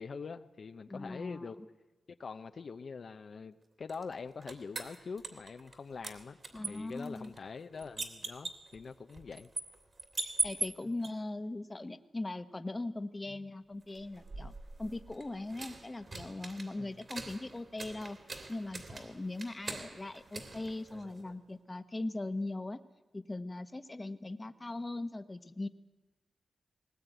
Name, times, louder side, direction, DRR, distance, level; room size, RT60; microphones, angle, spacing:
voice 1, 0.0-1.6 2.2-6.4 6.7-9.5 13.3-13.5 14.4-14.5 16.8-17.0, left 5 dB, 60° left, 9 dB, 0.7 m, -44 dB
voice 2, 0.9-1.7 6.5-7.3 10.2-14.5 14.8-18.2 18.5-22.8 23.1-25.7, left 2 dB, 25° left, 11 dB, 1.1 m, -40 dB
sound 1, 3.9-5.8 6.0-11.1 13.9-21.4, right 3 dB, 45° right, 2.8 m, -42 dB
20.0 x 19.5 x 9.2 m, 1.2 s
wide cardioid pair, 95°, 0 cm